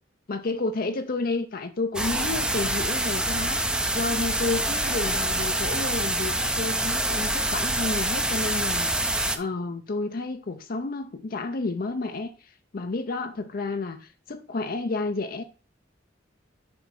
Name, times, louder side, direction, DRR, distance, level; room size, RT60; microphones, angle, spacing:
voice 1, 0.3-3.6 3.9-15.4, left 3 dB, 50° left, 0.6 m, -31 dB
sound 1, 1.9-9.4, right 1 dB, 5° right, 0.5 m, -26 dB
7.0 x 5.0 x 4.3 m
head